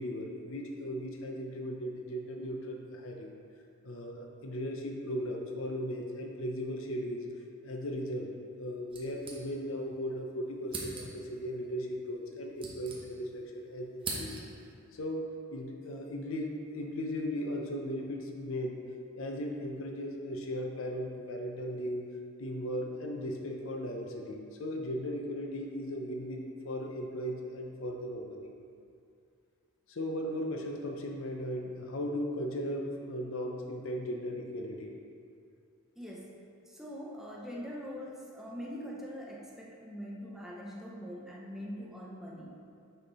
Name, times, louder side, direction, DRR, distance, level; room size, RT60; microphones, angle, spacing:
voice 1, 0.0-3.3 3.8-7.3 7.6-8.3 8.6-14.3 14.9-15.2 15.5-18.8 19.1-22.1 22.4-28.5 29.9-34.9, equal, 65° left, 2 dB, 0.7 m, -37 dB
sound 1, 8.9-9.9 10.2-10.3 10.7-11.4 12.2-13.5 13.7-14.7, right 3 dB, 25° right, 1.0 m, -42 dB
voice 2, 36.0-36.3 36.7-42.5, equal, ahead, -4 dB, 0.8 m, -43 dB
6.9 x 5.8 x 4.1 m, 2.4 s
head